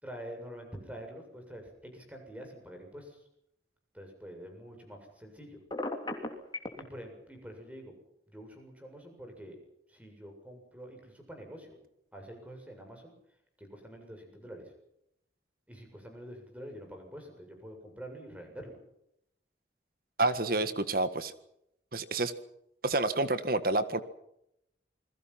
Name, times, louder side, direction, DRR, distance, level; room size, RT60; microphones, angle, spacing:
voice 1, 0.0-3.3 3.9-5.6 6.8-7.9 8.3-9.6 9.9-11.8 12.1-13.1 13.6-14.7 15.7-18.8, equal, 10° right, 3 dB, 7.3 m, -46 dB
Telephone, 5.7-6.8, left 2 dB, 25° left, 3.1 m, -34 dB
voice 2, 20.2-21.3 21.9-22.3 22.8-24.0, right 2 dB, 50° right, 11 dB, 1.7 m, -28 dB
28.5 x 21.5 x 5.9 m, 0.77 s
head